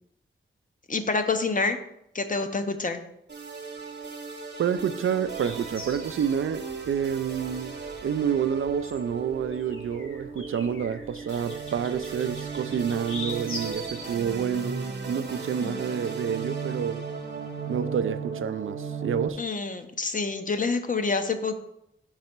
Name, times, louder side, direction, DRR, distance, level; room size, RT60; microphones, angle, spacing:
voice 1, 0.9-1.8 2.1-3.0 15.6-15.9 19.4-21.6, left 4 dB, 40° left, 0.7 m, -27 dB
sound 1, 3.3-19.3, right 5 dB, 55° right, 1.0 m, -36 dB
voice 2, 4.6-17.0 17.7-19.4, right 8 dB, 80° right, 0.4 m, -28 dB
sound 2, 5.2-14.4, left 2 dB, 80° left, 1.4 m, -43 dB
5.3 x 4.0 x 5.9 m
wide cardioid pair, 90°, 21 cm